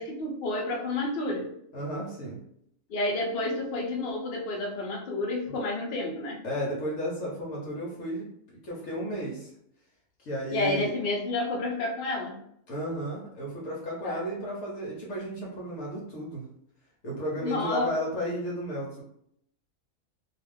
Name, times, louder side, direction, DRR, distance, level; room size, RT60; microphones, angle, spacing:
voice 1, 0.0-1.5 2.9-6.4 10.5-12.4 14.0-14.2 17.4-17.9, left 2 dB, 50° left, -1 dB, 0.8 m, -30 dB
voice 2, 1.7-2.4 5.5-5.6 6.4-9.5 10.2-10.9 12.7-16.4 17.0-19.0, equal, 70° left, -4 dB, 1.1 m, -33 dB
2.4 x 2.4 x 3.3 m, 0.72 s
omnidirectional pair, 1.5 m